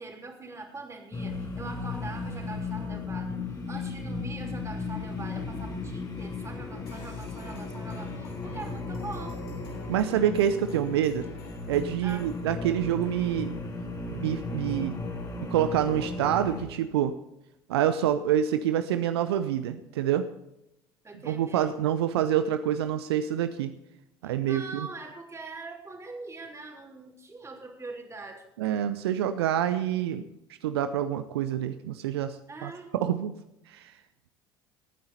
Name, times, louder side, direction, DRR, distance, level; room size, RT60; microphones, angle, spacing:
voice 1, 0.0-3.3 3.7-9.4 12.0-12.3 21.0-21.7 24.2-28.4 32.5-32.9, right 3 dB, 20° right, 1 dB, 3.3 m, -42 dB
sound 1, 1.1-16.7, left 3 dB, 30° left, 3.0 m, -36 dB
sound 2, 6.9-12.4, left 4 dB, 75° left, 3.0 m, -49 dB
voice 2, 9.9-11.3 11.7-13.5 14.1-15.0 15.5-17.2 17.7-20.3 21.2-23.7 24.2-24.9 28.6-30.2 30.6-33.3 33.7-33.9, right 10 dB, 70° right, 11 dB, 0.6 m, -27 dB
19.5 x 9.5 x 4.1 m, 0.86 s
figure-of-eight pair, 65°, 14 cm